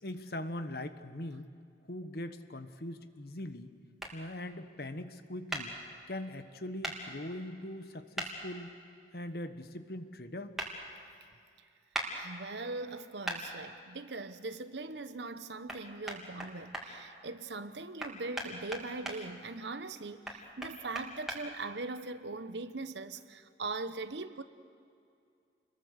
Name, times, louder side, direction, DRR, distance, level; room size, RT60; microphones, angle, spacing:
voice 1, 0.0-1.5 1.8-3.7 4.1-5.7 6.1-8.7 9.1-10.6, left 1 dB, 60° left, 1.2 m, -41 dB
sound 1, 4.0-4.1 5.5-5.6 6.8-7.0 8.1-8.3 10.6-10.7 11.9-12.1 13.2-13.4 15.7-15.8 16.1-16.8 18.0-19.2 20.2-21.4, right 1 dB, 5° right, 3.0 m, -37 dB
voice 2, 12.1-24.4, right 3 dB, 80° right, 1.1 m, -41 dB
29.0 x 22.0 x 6.7 m
head